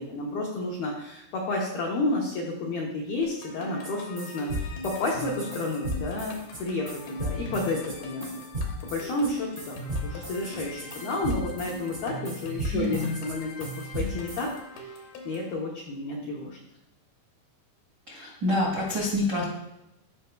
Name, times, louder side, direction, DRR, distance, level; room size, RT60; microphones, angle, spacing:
voice 1, 0.0-8.4 8.8-9.8 10.0-14.6 15.2-16.6, left 2 dB, 90° left, -3 dB, 2.1 m, -31 dB
sound 1, 3.2-15.5, equal, 70° left, 2.4 m, -42 dB
sound 2, 3.8-14.5, equal, 65° right, 0.4 m, -35 dB
voice 2, 12.7-13.2 18.1-19.4, left 1 dB, 85° right, -4 dB, 0.9 m, -27 dB
16.0 x 5.5 x 2.3 m, 0.90 s
omnidirectional pair, 5.9 m